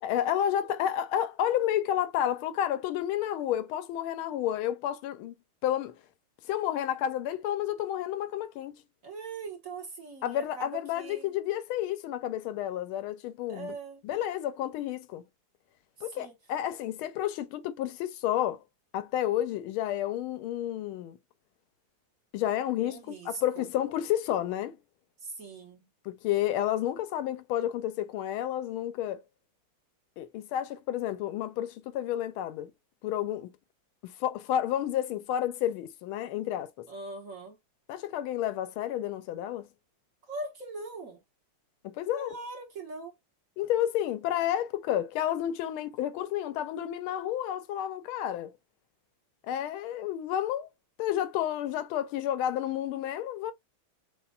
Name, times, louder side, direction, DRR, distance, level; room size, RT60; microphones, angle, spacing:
voice 1, 0.0-5.3 5.6-5.9 6.5-8.7 10.2-13.8 14.0-15.2 16.0-18.6 18.9-21.2 22.3-24.8 26.0-29.2 30.2-32.7 33.0-33.5 34.0-36.9 37.9-39.7 41.8-42.4 43.6-48.5 49.5-50.7 51.0-53.5, left 11 dB, 80° left, 1.4 m, -31 dB
voice 2, 9.0-11.3 13.5-14.0 16.0-16.3 22.8-23.7 25.2-25.9 36.9-37.6 40.3-41.2 42.1-43.1, right 3 dB, 45° right, 1.5 m, -41 dB
6.8 x 2.5 x 2.3 m
omnidirectional pair, 2.3 m